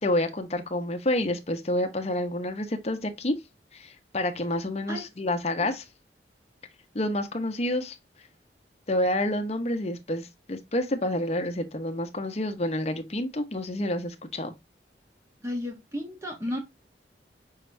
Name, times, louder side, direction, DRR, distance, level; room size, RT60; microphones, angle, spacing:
voice 1, 0.0-3.4 3.7-5.8 6.9-8.0 8.9-14.5, left 1 dB, 35° left, 0.7 m, -28 dB
voice 2, 15.4-16.6, left 1 dB, 15° right, 0.9 m, -33 dB
5.6 x 3.4 x 2.5 m
head